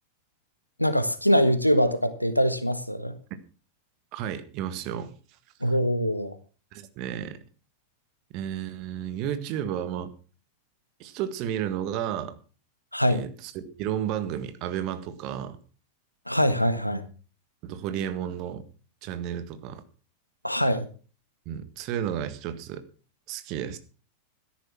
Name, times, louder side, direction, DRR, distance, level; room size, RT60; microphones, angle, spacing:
voice 1, 0.8-3.1 5.6-6.4 12.9-13.2 16.3-17.0 20.4-20.8, equal, 90° left, 11 dB, 1.5 m, -23 dB
voice 2, 4.1-5.2 6.7-7.4 8.3-10.1 11.0-12.3 13.1-15.6 17.6-18.6 19.0-19.8 21.4-22.8 23.3-23.8, right 10 dB, 40° right, 12 dB, 1.6 m, -32 dB
13.5 x 10.5 x 5.9 m, 0.38 s
figure-of-eight pair, 90°, 0 cm